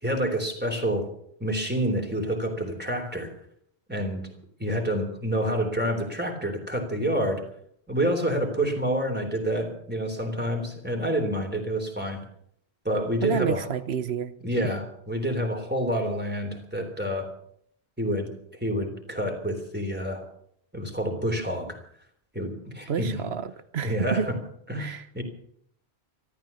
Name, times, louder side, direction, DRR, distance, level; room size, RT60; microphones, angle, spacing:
voice 1, 0.0-1.1 1.4-3.3 3.9-4.3 4.6-7.4 7.9-12.2 12.8-13.7 14.4-17.3 18.0-18.3 18.6-20.2 20.7-21.8 22.3-23.2 23.8-24.3 24.7-25.2, equal, 10° right, 3 dB, 3.4 m, -28 dB
voice 2, 13.2-14.3 22.9-24.3 24.8-25.0, right 6 dB, 75° right, 13 dB, 1.2 m, -29 dB
14.5 x 13.5 x 7.0 m, 0.68 s
omnidirectional pair, 1.1 m